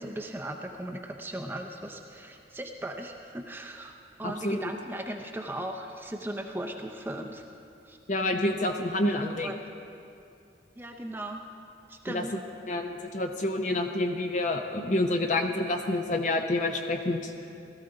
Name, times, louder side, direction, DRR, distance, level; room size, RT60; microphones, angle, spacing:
voice 1, 0.0-3.9 4.2-7.5 7.8-8.0 9.1-9.6 10.8-11.5 11.9-12.3, right 1 dB, 10° right, 3 dB, 0.6 m, -38 dB
voice 2, 4.2-4.6 8.1-9.5 12.1-12.2 12.7-17.3, left 2 dB, 40° left, 4 dB, 0.6 m, -28 dB
17.5 x 13.0 x 3.9 m, 2.6 s
head